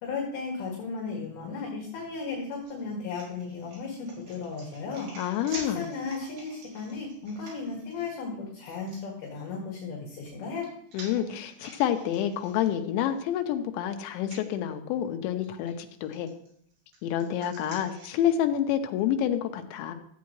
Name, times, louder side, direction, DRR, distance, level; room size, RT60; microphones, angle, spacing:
voice 1, 0.0-5.1 5.5-10.7, left 4 dB, 65° left, -2 dB, 3.5 m, -35 dB
sound 1, 2.5-8.1 8.9-9.0 10.2-13.2 13.6-13.7 14.2-14.4 15.4-15.7 16.1-18.3, right 2 dB, 65° right, 5.1 m, -48 dB
voice 2, 5.2-5.9 10.9-16.3 17.0-19.9, left 10 dB, 90° left, 6 dB, 3.1 m, -28 dB
14.0 x 8.3 x 3.1 m, 0.65 s
omnidirectional pair, 5.1 m